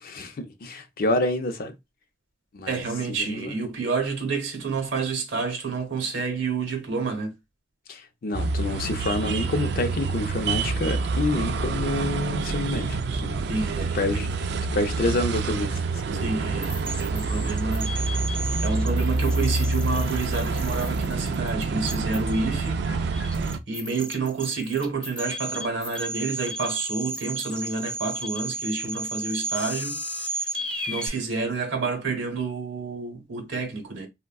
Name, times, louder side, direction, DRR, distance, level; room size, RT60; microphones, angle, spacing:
voice 1, 0.0-1.7 2.5-2.8 3.1-3.6 7.9-13.4 13.9-14.5 14.7-15.8 16.1-16.3, left 2 dB, 50° left, 0.5 m, -28 dB
voice 2, 2.7-7.3 13.5-14.2 16.1-18.2 18.6-23.4 23.7-34.1, right 4 dB, 80° right, 0.9 m, -29 dB
sound 1, 8.3-23.6, right 3 dB, 60° right, 0.3 m, -27 dB
sound 2, 16.6-31.1, right 2 dB, 5° left, 0.6 m, -34 dB
3.6 x 2.1 x 2.2 m
head